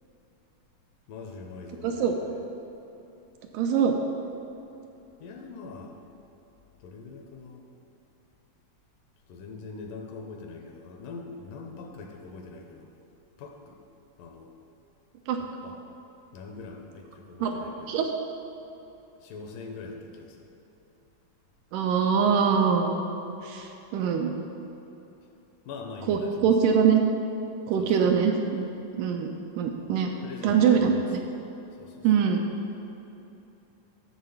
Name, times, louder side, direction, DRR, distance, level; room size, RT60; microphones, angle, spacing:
voice 1, 1.1-2.3 5.2-6.0 6.8-7.6 9.3-13.0 13.4-13.8 14.2-14.6 15.4-15.8 16.3-18.0 19.2-20.5 25.7-26.5 27.8-27.9 30.2-31.1 31.8-32.1, left 4 dB, 80° left, 2 dB, 2.2 m, -42 dB
voice 2, 1.8-2.1 3.5-4.0 15.3-15.4 17.4-17.6 17.9-18.1 21.7-23.1 23.4-24.3 26.1-27.0 27.7-28.7 28.9-30.1 30.4-31.2 32.0-32.4, right 7 dB, 80° right, 3 dB, 2.0 m, -23 dB
10.5 x 4.0 x 7.0 m, 2.9 s
omnidirectional pair, 4.0 m